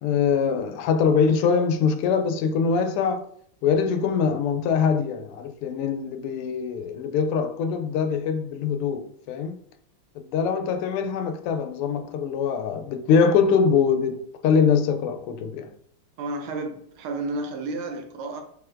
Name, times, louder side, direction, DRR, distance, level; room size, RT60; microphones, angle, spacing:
voice 1, 0.0-3.3 3.6-9.6 10.1-15.7, left 6 dB, 90° left, 1.5 m, -23 dB
voice 2, 16.2-18.4, right 2 dB, 75° right, 1.5 m, -31 dB
6.7 x 3.1 x 2.5 m
omnidirectional pair, 2.4 m